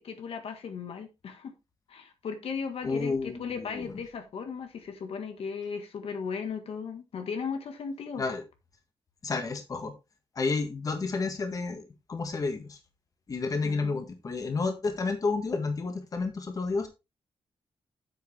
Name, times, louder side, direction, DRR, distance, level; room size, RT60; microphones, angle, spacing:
voice 1, 0.0-1.5 1.9-8.2 13.6-14.0, left 6 dB, 70° left, 1.6 m, -36 dB
voice 2, 2.8-3.9 8.2-8.4 9.2-9.9 10.4-12.8 13.3-16.9, left 4 dB, 35° left, 1.7 m, -31 dB
9.2 x 7.8 x 3.4 m
wide cardioid pair, 170°, 10 cm